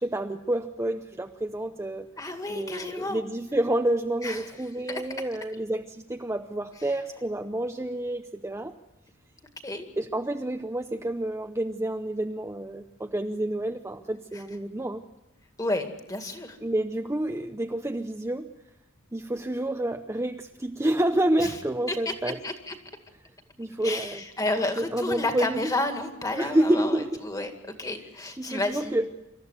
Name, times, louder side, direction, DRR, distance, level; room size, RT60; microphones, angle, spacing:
voice 1, 0.0-2.1 2.5-8.7 10.0-15.0 16.6-18.5 19.1-22.4 23.6-24.2 24.6-25.7 26.4-27.2 28.4-29.1, right 1 dB, 15° right, 5 dB, 0.7 m, -29 dB
voice 2, 2.2-3.2 4.2-4.4 4.9-5.0 9.6-9.9 15.6-16.6 21.4-21.5 21.9-22.1 22.4-22.7 23.8-29.0, left 2 dB, 15° left, 5 dB, 2.1 m, -31 dB
26.5 x 13.5 x 8.1 m, 0.95 s
head